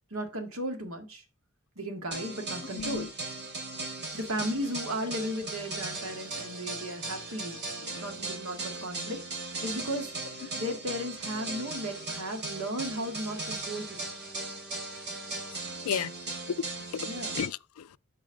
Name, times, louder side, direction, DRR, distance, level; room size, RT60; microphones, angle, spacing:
voice 1, 0.1-1.2 1.8-3.1 4.1-14.3 17.0-17.4, equal, 85° right, 2.0 m, -36 dB
sound 1, 2.1-17.5, right 3 dB, 55° right, 2.8 m, -38 dB
voice 2, 2.7-3.1 10.4-10.5 15.8-16.1 16.5-17.1 17.4-18.0, left 7 dB, 80° left, 0.4 m, -33 dB
7.4 x 4.8 x 6.3 m
head